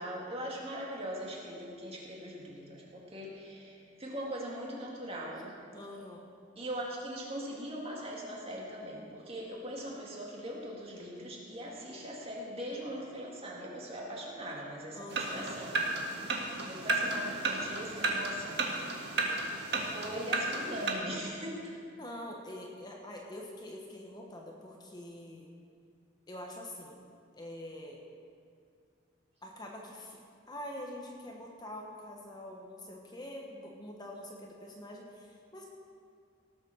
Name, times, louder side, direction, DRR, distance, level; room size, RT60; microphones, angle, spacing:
voice 1, 0.0-5.6 6.6-15.8 16.6-18.9 19.8-21.7, equal, 30° right, -3 dB, 2.3 m, -41 dB
voice 2, 5.7-6.3 14.9-15.5 21.9-25.5 26.3-27.0 27.4-28.0 29.4-30.2 30.5-35.7, left 1 dB, 20° left, 0 dB, 1.2 m, -45 dB
sound 1, 15.1-20.9, right 2 dB, 60° right, 1.7 m, -33 dB
17.5 x 7.3 x 6.5 m, 2.3 s
head